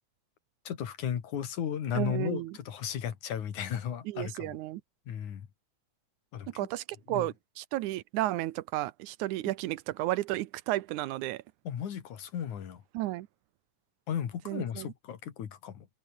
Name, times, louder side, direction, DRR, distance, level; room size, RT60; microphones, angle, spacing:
voice 1, 0.7-4.6 5.1-5.5 6.3-6.5 7.1-7.3 11.7-12.8 14.1-15.9, left 9 dB, 80° left, 3.6 m, -35 dB
voice 2, 2.0-2.6 4.1-4.8 6.6-11.4 12.9-13.3 14.5-14.9, right 16 dB, 80° right, 2.2 m, -33 dB
omnidirectional pair, 3.4 m